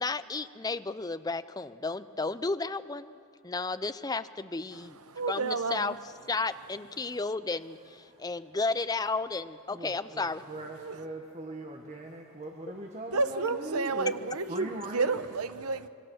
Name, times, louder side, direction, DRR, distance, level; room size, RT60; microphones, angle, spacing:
voice 1, 0.0-3.2 3.4-5.0 5.3-5.9 6.3-10.4, left 3 dB, 15° left, 0.5 m, -33 dB
voice 2, 4.7-6.0 7.0-7.1 10.6-11.0 13.1-15.9, right 4 dB, 90° right, 0.9 m, -31 dB
voice 3, 8.1-8.6 9.7-15.2, right 1 dB, 30° right, 1.5 m, -41 dB
25.5 x 23.0 x 6.4 m
head